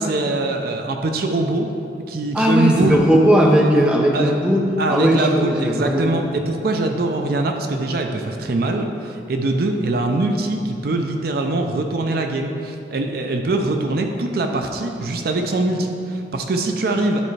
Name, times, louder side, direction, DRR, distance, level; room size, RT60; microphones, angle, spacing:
voice 1, 0.0-1.7 2.1-3.0 4.1-4.3 4.8-17.2, right 2 dB, 55° right, 4 dB, 0.5 m, -22 dB
voice 2, 2.3-6.1, equal, 5° right, -1 dB, 0.6 m, -17 dB
11.0 x 4.3 x 3.2 m, 2.6 s
head